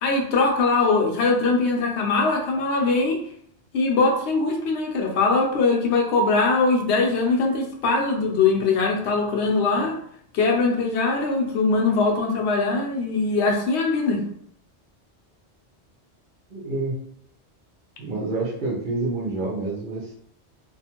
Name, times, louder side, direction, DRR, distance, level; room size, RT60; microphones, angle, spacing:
voice 1, 0.0-3.2 3.7-10.0 10.3-14.2, left 3 dB, 80° left, 1 dB, 0.9 m, -21 dB
voice 2, 16.5-17.0 18.0-20.1, right 3 dB, 50° right, -3 dB, 0.8 m, -28 dB
2.5 x 2.4 x 2.8 m, 0.65 s
omnidirectional pair, 1.1 m